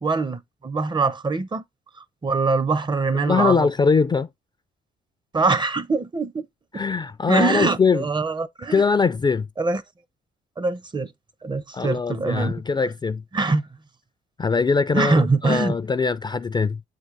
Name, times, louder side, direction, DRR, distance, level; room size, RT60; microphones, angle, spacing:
voice 1, 0.0-1.6 2.2-3.7 5.3-6.5 7.3-8.8 9.6-9.8 10.6-11.1 11.4-12.5 13.3-13.6 14.9-15.7, right 3 dB, 25° right, 0.6 m, -23 dB
voice 2, 3.2-4.3 6.7-8.1 8.7-9.5 11.7-13.2 14.4-16.8, left 5 dB, 20° left, 0.4 m, -22 dB
7.8 x 3.7 x 3.2 m
cardioid pair, 90°, 20 cm